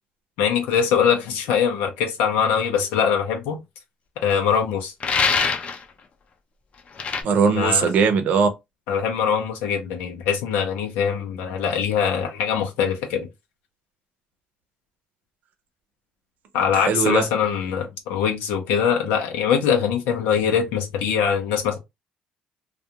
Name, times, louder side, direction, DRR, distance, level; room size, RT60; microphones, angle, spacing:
voice 1, 0.4-3.6 4.2-4.9 7.5-7.9 8.9-13.3 16.5-21.8, left 7 dB, 90° left, 0.6 m, -22 dB
sound 1, 5.0-5.8 7.0-7.2, left 5 dB, 45° left, 0.6 m, -22 dB
voice 2, 7.2-8.5 16.7-17.3, right 5 dB, 65° right, 0.7 m, -19 dB
2.4 x 2.3 x 2.8 m
cardioid pair, 85°, 3 cm